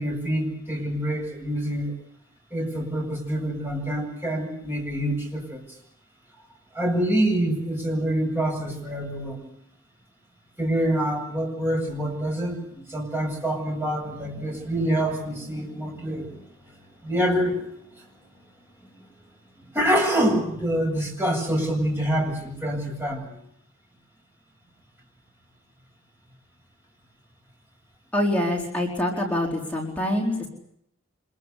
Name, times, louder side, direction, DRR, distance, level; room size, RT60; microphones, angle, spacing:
voice 1, 0.0-2.0 2.5-5.6 6.7-9.5 10.6-16.4 17.0-17.7 18.9-19.1 19.7-23.4, right 1 dB, 10° right, 0 dB, 7.9 m, -26 dB
voice 2, 28.1-30.5, left 1 dB, 5° left, -2 dB, 4.4 m, -25 dB
26.0 x 22.5 x 8.4 m, 0.73 s
head